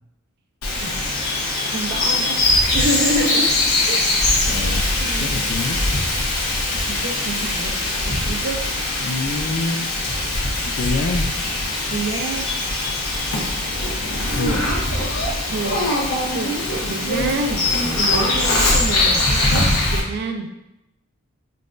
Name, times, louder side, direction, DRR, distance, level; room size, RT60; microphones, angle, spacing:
Bird vocalization bird call bird song, 0.6-20.0, left 2 dB, 90° left, 1.0 m, -21 dB
voice 1, 1.5-2.4 2.7-3.6 3.8-4.1 5.0-5.3 6.9-7.7 8.1-8.6 11.9-12.5 15.5-15.9 16.3-16.6 16.8-20.5, right 2 dB, 50° right, 4 dB, 0.4 m, -27 dB
voice 2, 4.5-4.8 5.2-5.8 9.0-10.1 10.6-11.3 14.3-14.7, left 3 dB, 50° left, 5 dB, 0.4 m, -26 dB
5.3 x 2.2 x 2.5 m, 0.87 s
head